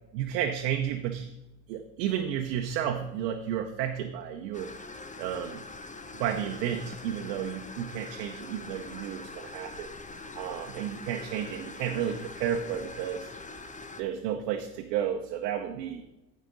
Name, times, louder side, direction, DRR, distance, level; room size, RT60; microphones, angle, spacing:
voice 1, 0.1-1.3 1.7-4.7 5.2-5.6 6.1-9.9 10.3-13.3 14.0-16.0, right 9 dB, 80° right, 5 dB, 0.9 m, -32 dB
sound 1, 4.5-14.0, left 3 dB, 15° left, 0.9 m, -43 dB
15.0 x 5.0 x 3.9 m, 0.99 s
hypercardioid pair, 70°, 48 cm